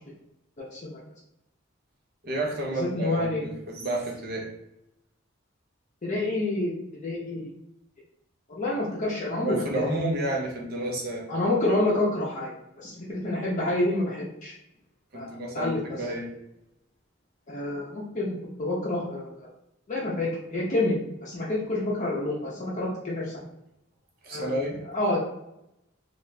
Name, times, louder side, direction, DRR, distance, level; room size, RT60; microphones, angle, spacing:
voice 1, 2.2-4.5 9.4-11.3 15.1-16.3 24.2-24.9, right 1 dB, 50° right, -2 dB, 0.8 m, -30 dB
voice 2, 2.8-3.4 6.0-6.7 7.0-7.5 8.6-9.6 11.3-12.5 12.8-14.5 15.1-15.8 17.5-19.5 19.9-23.3 24.3-24.6 24.9-25.2, left 2 dB, 40° left, -5 dB, 0.6 m, -28 dB
2.9 x 2.4 x 3.2 m, 0.85 s
head